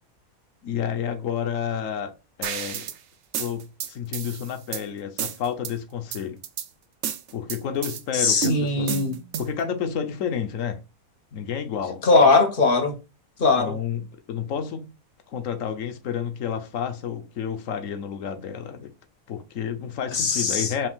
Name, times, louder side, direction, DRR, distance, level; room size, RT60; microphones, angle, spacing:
voice 1, 0.6-2.1 2.4-2.9 3.4-6.4 7.3-8.9 9.4-10.8 11.3-12.0 13.6-14.9 15.3-18.9 19.3-20.9, left 8 dB, 70° left, 1.1 m, -30 dB
sound 1, 2.4-3.0 3.3-4.8 5.2-5.7 6.1-6.7 7.0-8.0 8.4-9.6, right 10 dB, 60° right, 0.8 m, -31 dB
voice 2, 8.1-9.2 12.0-13.0 13.4-13.8 20.1-20.7, left 3 dB, 50° left, 0.7 m, -20 dB
5.4 x 3.6 x 2.3 m
omnidirectional pair, 1.5 m